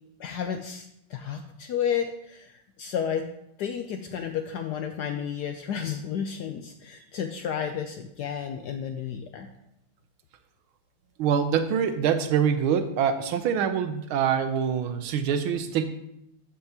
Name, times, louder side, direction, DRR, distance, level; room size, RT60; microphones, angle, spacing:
voice 1, 0.2-2.5 2.8-3.3 3.6-9.5, left 8 dB, 75° left, 6 dB, 0.9 m, -32 dB
voice 2, 11.2-15.9, right 7 dB, 85° right, 9 dB, 1.6 m, -25 dB
13.0 x 5.8 x 2.8 m, 0.80 s
omnidirectional pair, 2.2 m